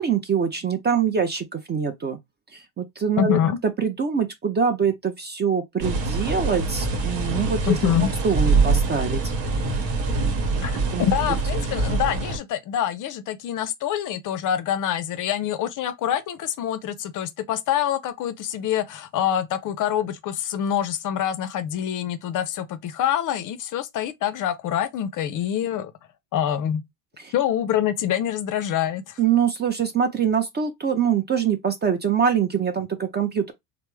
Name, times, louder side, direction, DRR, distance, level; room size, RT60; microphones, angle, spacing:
voice 1, 0.0-2.2 2.5-3.4 3.8-7.7 8.2-9.2 10.3-10.7 10.9-11.0 27.2-27.3 29.2-33.5, right 7 dB, 25° right, 0.4 m, -24 dB
voice 2, 3.2-3.6 7.7-8.1 10.6-25.9 26.3-26.8 27.3-29.2, left 10 dB, 40° left, 0.4 m, -25 dB
sound 1, 5.8-12.4, right 3 dB, 60° right, 1.1 m, -24 dB
3.2 x 2.1 x 3.0 m
supercardioid pair, 90°, 49 cm